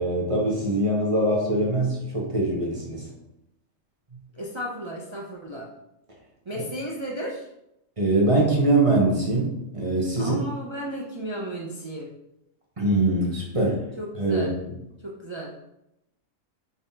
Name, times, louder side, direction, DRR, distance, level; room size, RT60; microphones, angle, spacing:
voice 1, 0.0-3.1 6.5-6.6 8.0-10.4 12.8-13.8 14.2-14.7, right 2 dB, 30° right, -3 dB, 0.9 m, -23 dB
voice 2, 4.3-5.7 6.5-7.5 10.2-12.1 14.0-14.5 15.0-15.5, equal, 50° right, -3 dB, 0.3 m, -34 dB
5.3 x 3.5 x 2.8 m, 0.84 s
omnidirectional pair, 1.4 m